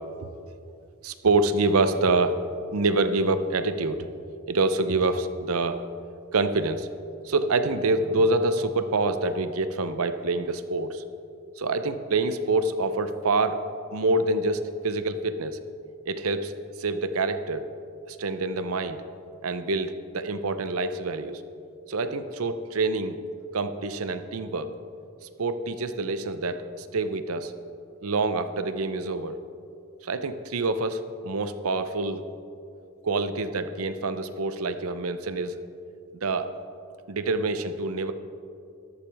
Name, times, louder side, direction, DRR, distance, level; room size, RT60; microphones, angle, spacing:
voice 1, 1.0-2.4 2.7-4.1 4.5-5.8 6.3-6.9 7.2-11.0 11.6-13.6 13.9-15.6 16.1-16.5 16.8-17.6 18.1-19.0 19.4-21.4 21.9-23.2 23.5-24.7 25.2-27.5 28.0-29.4 30.0-32.2 33.0-35.5 36.2-36.5 37.1-38.1, right 3 dB, 85° right, 11 dB, 0.7 m, -26 dB
14.0 x 11.5 x 3.5 m, 2.5 s
head